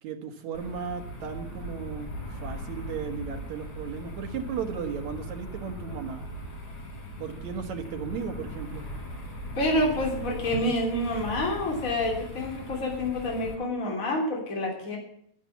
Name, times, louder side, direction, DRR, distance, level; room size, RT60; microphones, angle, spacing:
voice 1, 0.0-6.2 7.2-8.8 10.5-10.6, right 6 dB, 75° right, 4 dB, 2.9 m, -35 dB
sound 1, 0.5-13.6, equal, 80° left, 5.4 m, -39 dB
voice 2, 9.6-15.0, left 1 dB, 25° left, 0 dB, 3.4 m, -28 dB
11.0 x 11.0 x 7.0 m, 0.69 s
omnidirectional pair, 3.3 m